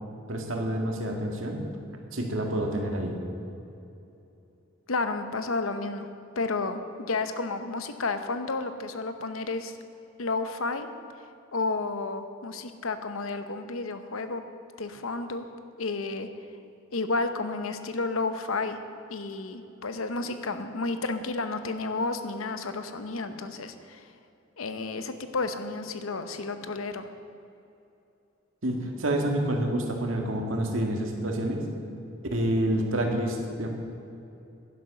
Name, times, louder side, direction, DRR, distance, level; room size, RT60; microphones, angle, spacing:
voice 1, 0.3-1.6 2.1-3.2 28.6-31.7 32.3-33.7, right 1 dB, 70° right, 2 dB, 1.9 m, -28 dB
voice 2, 4.9-6.1 6.4-9.8 10.2-10.9 11.5-14.4 14.8-15.4 15.8-16.3 16.9-18.8 19.1-24.1 24.6-27.1, left 3 dB, 80° left, 9 dB, 0.9 m, -31 dB
11.0 x 10.5 x 6.5 m, 2.8 s
head